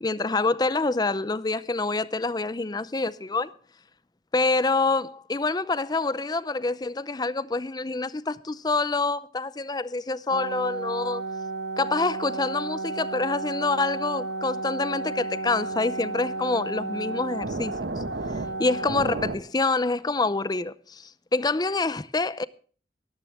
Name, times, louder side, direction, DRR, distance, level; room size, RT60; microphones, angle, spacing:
voice 1, 0.0-3.5 4.3-11.2 11.8-17.9 18.6-22.4, left 3 dB, 25° left, 0.6 m, -26 dB
sound 1, 10.3-19.4, right 3 dB, 75° right, 1.4 m, -32 dB
19.0 x 13.0 x 3.6 m
head